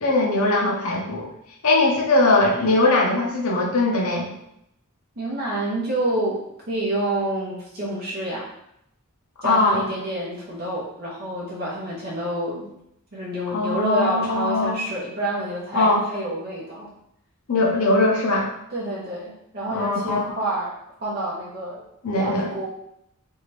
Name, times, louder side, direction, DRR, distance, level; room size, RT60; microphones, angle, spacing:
voice 1, 0.0-1.3 1.6-4.2 9.4-9.8 13.5-14.8 15.7-16.0 17.5-18.5 19.7-20.3 22.0-22.5, left 2 dB, 75° left, -2 dB, 0.7 m, -20 dB
voice 2, 5.2-6.4 6.7-8.5 9.4-12.7 13.1-16.9 17.7-17.9 18.7-20.7 21.0-21.8 22.1-22.7, right 1 dB, 45° right, -6 dB, 0.8 m, -28 dB
2.7 x 2.4 x 3.2 m, 0.77 s
head